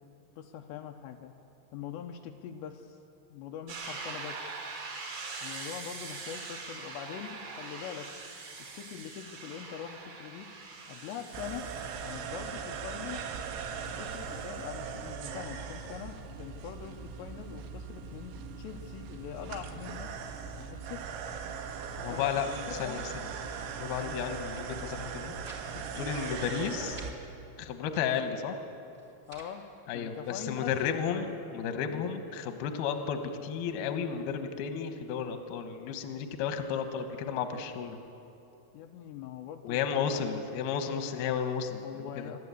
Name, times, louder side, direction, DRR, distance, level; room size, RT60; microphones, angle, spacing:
voice 1, 0.4-1.3 1.7-3.0 3.3-4.6 5.4-8.1 8.6-10.5 10.9-11.7 12.0-13.3 13.9-20.2 20.6-21.1 22.1-23.0 24.0-24.3 25.9-26.2 29.3-29.6 29.9-32.0 38.7-40.2 41.8-42.4, left 9 dB, 90° left, 3 dB, 2.5 m, -43 dB
sound 1, 3.7-15.3, right 4 dB, 50° right, 3.1 m, -44 dB
sound 2, 11.3-27.1, right 6 dB, 85° right, 3.9 m, -39 dB
voice 2, 22.0-22.5 22.8-23.0 23.6-25.3 26.0-27.0 27.6-28.6 29.9-38.0 39.6-42.3, left 7 dB, 70° left, 6 dB, 2.4 m, -33 dB
sound 3, 24.3-24.7 25.0-25.6 25.9-26.0 26.4-27.1 27.7-28.3 28.9-29.5 30.2-31.0, right 2 dB, 35° right, 1.4 m, -53 dB
27.0 x 12.0 x 8.4 m, 2.7 s
omnidirectional pair, 5.9 m